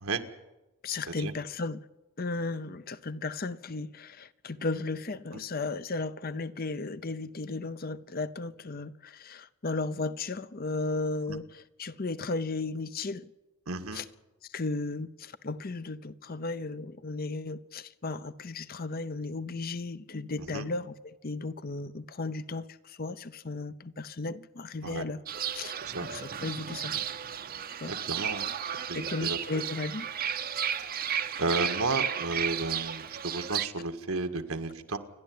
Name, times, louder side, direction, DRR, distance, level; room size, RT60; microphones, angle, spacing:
voice 1, 0.8-1.8 2.2-11.5 11.8-13.3 13.9-14.0 14.5-25.2 25.5-25.7 26.1-26.9 27.8-27.9 28.9-30.1, left 3 dB, 45° left, 0.7 m, -35 dB
voice 2, 13.7-14.0 20.4-20.7 24.8-25.1 25.8-26.1 27.9-28.5 28.9-29.6 30.8-30.9 31.4-35.0, right 3 dB, 80° right, 1.7 m, -33 dB
Fowl / Bird, 25.3-33.7, right 9 dB, 40° right, 0.8 m, -33 dB
28.5 x 11.5 x 9.6 m
head